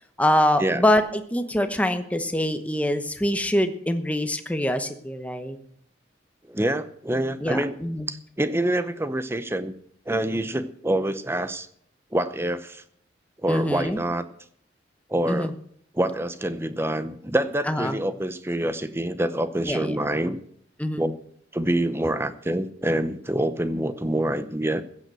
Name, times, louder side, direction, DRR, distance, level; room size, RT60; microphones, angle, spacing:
voice 1, 0.2-5.6 7.4-8.1 13.5-14.0 15.3-15.5 17.7-18.0 19.6-20.0 20.8-21.0, left 1 dB, 5° left, 8 dB, 1.0 m, -24 dB
voice 2, 6.5-7.7 8.1-9.7 10.1-11.7 12.1-12.8 13.4-14.2 15.1-15.5 15.9-20.4 21.0-21.1 21.5-24.8, right 1 dB, 15° right, 12 dB, 0.7 m, -26 dB
15.0 x 8.2 x 7.7 m, 0.66 s
head